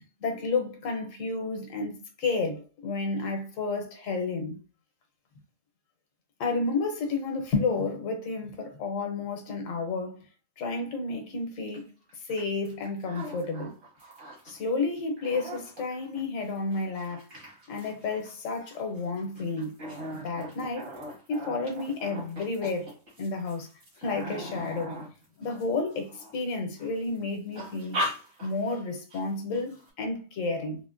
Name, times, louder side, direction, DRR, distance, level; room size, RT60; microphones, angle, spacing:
voice 1, 0.0-4.6 6.4-10.2 10.6-11.9 12.3-13.7 14.5-17.2 17.7-19.7 20.1-20.9 21.3-22.9 23.2-23.7 24.0-24.9 25.4-28.0 28.4-30.8, left 3 dB, 80° left, 1.2 m, -31 dB
sound 1, 11.7-11.8 12.1-14.6 15.0-26.4 26.8-27.2 27.5-28.8 29.1-29.2 29.5-29.9, equal, 70° right, 1.8 m, -39 dB
3.7 x 2.1 x 2.5 m
omnidirectional pair, 1.4 m